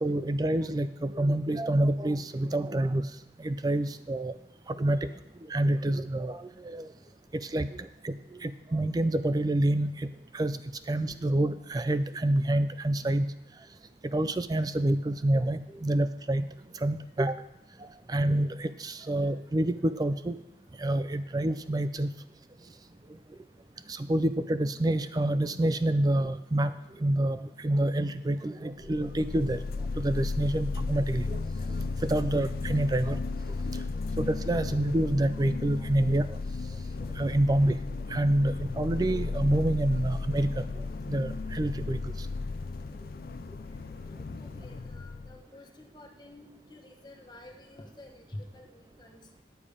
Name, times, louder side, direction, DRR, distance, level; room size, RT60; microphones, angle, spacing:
voice 1, 0.0-3.0 3.4-4.3 4.8-5.0 5.5-6.9 7.5-7.7 8.0-8.1 8.4-10.1 10.3-10.6 10.9-13.3 14.1-16.4 16.8-17.3 18.1-20.4 20.8-22.1 23.9-26.7 27.0-29.6 30.0-31.4 32.0-33.2 34.2-36.3 37.2-37.8 38.1-40.6 41.1-42.0, right 1 dB, 20° right, 12 dB, 0.4 m, -27 dB
sound 1, 28.8-45.4, left 3 dB, 55° left, 0.4 m, -34 dB
voice 2, 43.7-49.4, left 1 dB, 25° left, 2 dB, 1.1 m, -49 dB
10.5 x 7.0 x 5.0 m, 0.83 s
head